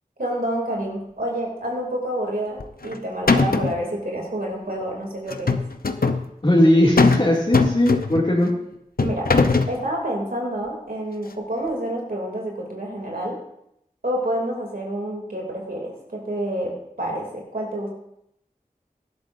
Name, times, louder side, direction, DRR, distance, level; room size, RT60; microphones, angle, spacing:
voice 1, 0.2-5.6 9.0-9.3 9.7-13.4 14.0-17.9, right 1 dB, 80° right, -2 dB, 2.9 m, -28 dB
sound 1, 2.6-3.0 3.3-3.8 5.3-6.2 7.0-7.3 7.5-8.3 9.0-9.8, left 4 dB, 80° left, 0.8 m, -20 dB
voice 2, 6.4-8.5, left 1 dB, 35° left, -7 dB, 2.6 m, -18 dB
19.0 x 12.0 x 2.7 m, 0.78 s
wide cardioid pair, 50°, 15 cm